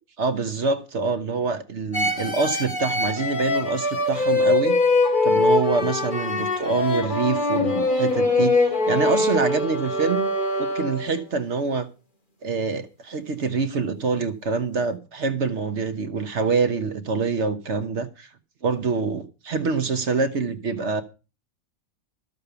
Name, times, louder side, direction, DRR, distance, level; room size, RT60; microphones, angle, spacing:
voice 1, 0.2-4.8 5.2-10.3 10.6-11.9 12.4-18.3 18.6-21.0, right 4 dB, 55° right, 1.2 m, -25 dB
sound 1, 1.9-11.3, left 2 dB, 35° left, 2.5 m, -23 dB
13.0 x 6.7 x 6.7 m
omnidirectional pair, 1.5 m